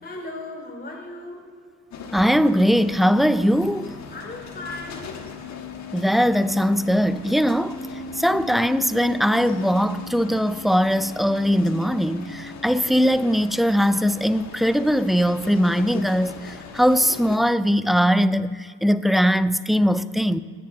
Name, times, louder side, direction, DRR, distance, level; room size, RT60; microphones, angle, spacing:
voice 1, 0.0-1.5 4.1-5.1, left 2 dB, 30° left, 2.9 m, -36 dB
sound 1, 1.9-17.4, left 5 dB, 65° left, 1.3 m, -38 dB
voice 2, 2.1-3.9 5.9-7.8 8.2-16.4 16.7-20.4, equal, ahead, 0.3 m, -20 dB
10.5 x 7.3 x 7.6 m
cardioid pair, 90°, 30 cm